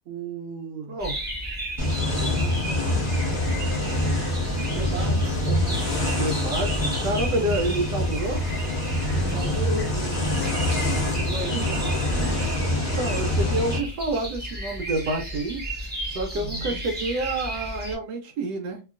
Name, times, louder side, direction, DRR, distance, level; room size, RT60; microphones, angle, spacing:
voice 1, 0.0-1.0 2.0-4.2 4.7-6.1 9.0-12.5 16.4-16.8, right 3 dB, 55° right, 1.0 m, -37 dB
sound 1, 1.0-18.0, equal, 10° right, 0.8 m, -34 dB
sound 2, 1.8-13.8, left 1 dB, 30° left, 1.2 m, -25 dB
voice 2, 6.1-8.4 12.7-15.6 16.1-18.8, right 2 dB, 75° right, 1.2 m, -28 dB
2.9 x 2.8 x 2.4 m
omnidirectional pair, 1.9 m